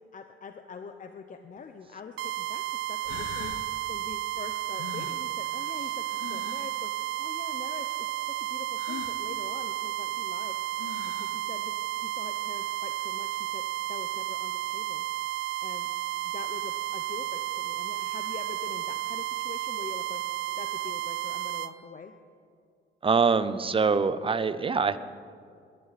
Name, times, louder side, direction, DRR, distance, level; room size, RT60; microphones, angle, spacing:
voice 1, 0.0-10.6 11.2-13.6 13.9-15.0 15.6-15.9 16.2-20.2 20.6-22.1, left 5 dB, 40° left, 7 dB, 0.8 m, -44 dB
sound 1, 1.6-1.7 2.6-2.7 3.1-3.7 4.8-6.7 8.8-9.2 10.4-10.5 10.8-11.4, left 8 dB, 85° left, 1.1 m, -42 dB
sound 2, 2.2-21.7, right 15 dB, 75° right, 0.6 m, -32 dB
voice 2, 23.0-25.0, right 5 dB, 25° right, 13 dB, 0.7 m, -24 dB
21.0 x 11.0 x 4.2 m, 2.3 s
cardioid pair, 90°, 20 cm